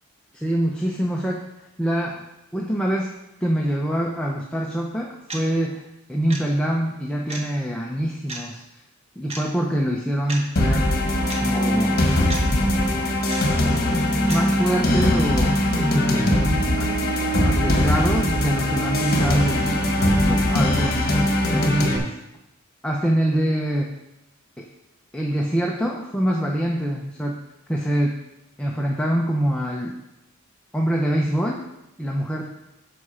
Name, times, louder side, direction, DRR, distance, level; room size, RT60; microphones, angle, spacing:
voice 1, 0.3-1.5 1.8-2.2 2.5-3.1 3.4-8.8 9.2-10.9 11.4-12.1 12.5-13.3 13.9-15.6 16.8-16.9 17.4-19.8 20.2-21.1 21.5-22.1 22.8-23.9 24.6-24.7 25.1-27.4 27.7-28.2 28.6-30.0 30.7-31.6 32.0-32.4, equal, 5° left, -1 dB, 0.6 m, -25 dB
sound 1, 5.3-5.5 6.3-6.4 7.3-7.4 8.3-8.5 9.3-9.4 10.3-10.5 11.3-11.5 12.3-12.5 13.3-13.4 14.3-14.5, right 3 dB, 30° right, 1.1 m, -33 dB
sound 2, 10.6-22.0, left 1 dB, 45° left, 1.3 m, -21 dB
8.2 x 4.8 x 5.6 m, 0.91 s
head